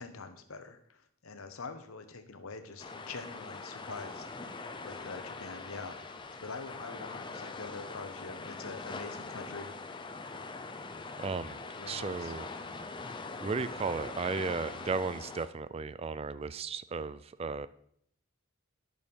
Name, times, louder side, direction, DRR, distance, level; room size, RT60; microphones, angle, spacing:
voice 1, 0.0-4.3 4.8-6.0 6.4-9.7 11.7-12.3, left 4 dB, 75° left, 8 dB, 1.0 m, -44 dB
sound 1, 2.8-15.5, left 3 dB, 20° left, 0.6 m, -43 dB
voice 2, 11.2-11.6 11.9-12.5 13.1-17.7, right 4 dB, 25° right, 15 dB, 0.3 m, -35 dB
9.4 x 6.3 x 5.4 m, 0.69 s
head